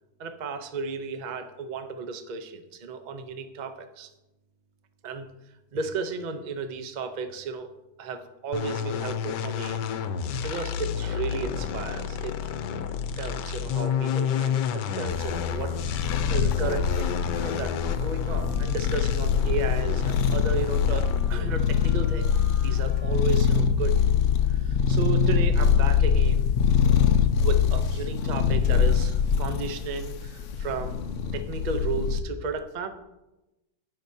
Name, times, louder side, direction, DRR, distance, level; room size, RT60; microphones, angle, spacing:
voice 1, 0.2-4.1 5.0-5.3 5.7-7.7 8.0-9.8 10.4-12.3 13.2-22.3 22.6-24.0 24.5-26.5 27.4-30.9 31.3-32.9, right 4 dB, 90° right, 8 dB, 0.4 m, -34 dB
sound 1, 8.5-21.5, left 7 dB, 85° left, 1.3 m, -30 dB
sound 2, 15.1-32.2, left 7 dB, 65° left, 0.7 m, -24 dB
Wind instrument woodwind instrument, 16.4-23.7, left 2 dB, 10° left, 1.1 m, -47 dB
17.0 x 5.8 x 2.7 m, 0.99 s
omnidirectional pair, 1.8 m